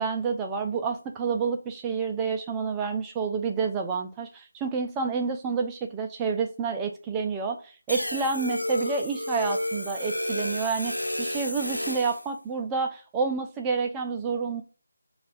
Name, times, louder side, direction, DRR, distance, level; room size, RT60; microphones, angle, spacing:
voice 1, 0.0-7.6 7.9-14.6, right 5 dB, 10° right, 3 dB, 0.4 m, -29 dB
sound 1, 7.9-12.3, left 1 dB, 85° left, 1.0 m, -31 dB
5.7 x 2.3 x 2.5 m, 0.37 s
figure-of-eight pair, 160°, 0 cm